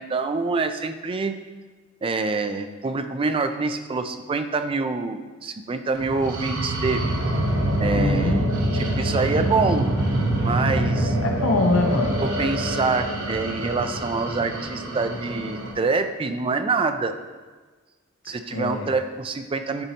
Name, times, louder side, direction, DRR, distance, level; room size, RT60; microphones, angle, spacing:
voice 1, 0.0-1.4 2.0-7.1 7.8-8.5 8.7-9.9 10.4-11.2 12.2-17.1 18.3-19.8, right 4 dB, 25° right, 8 dB, 0.4 m, -26 dB
sound 1, 6.0-15.7, right 1 dB, 70° right, 0.9 m, -25 dB
voice 2, 7.9-8.6 11.0-12.2 18.5-18.9, left 2 dB, 70° left, 2 dB, 0.7 m, -24 dB
10.5 x 4.0 x 2.9 m, 1.3 s
head